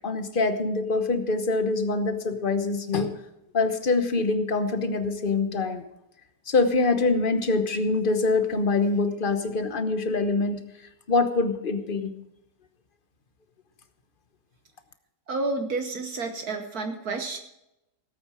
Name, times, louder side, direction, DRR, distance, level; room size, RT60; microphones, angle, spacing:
voice 1, 0.0-3.2 3.5-5.8 6.5-10.6 11.1-12.1, left 3 dB, 35° left, 9 dB, 1.1 m, -24 dB
voice 2, 15.3-17.4, right 3 dB, 60° right, 5 dB, 1.6 m, -30 dB
17.5 x 8.7 x 4.9 m, 0.88 s
omnidirectional pair, 1.8 m